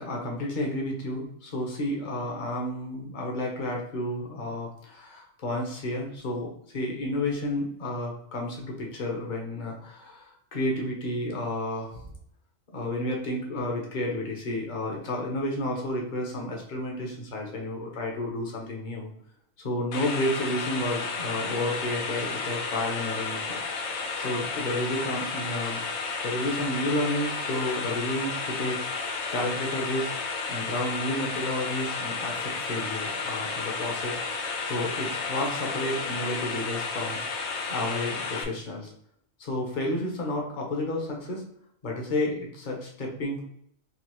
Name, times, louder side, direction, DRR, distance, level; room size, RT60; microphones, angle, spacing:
voice 1, 0.0-12.1 12.7-19.1 19.6-23.6 24.2-28.8 29.3-30.1 30.5-34.2 34.6-37.2 37.7-38.9 39.4-41.4 41.8-43.4, left 1 dB, 40° left, -1 dB, 1.1 m, -31 dB
sound 1, 19.9-38.4, left 4 dB, 65° left, 0.8 m, -32 dB
4.0 x 2.8 x 3.0 m, 0.71 s
omnidirectional pair, 1.3 m